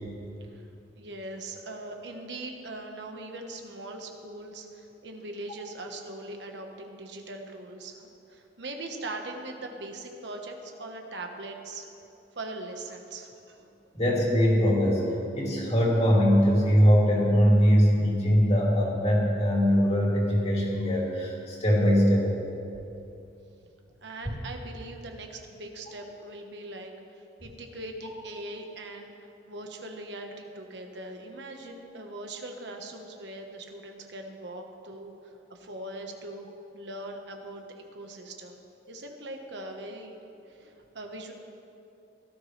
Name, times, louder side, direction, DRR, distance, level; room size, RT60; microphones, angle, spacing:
voice 1, 1.0-11.9 12.3-13.6 24.0-29.1 29.5-36.5 36.7-37.7 37.9-38.6 38.9-40.1 40.5-41.3, right 2 dB, 75° right, 3 dB, 1.3 m, -41 dB
voice 2, 13.9-15.0 15.3-22.3, equal, 40° left, -4 dB, 2.8 m, -22 dB
17.0 x 13.0 x 3.3 m, 2.7 s
head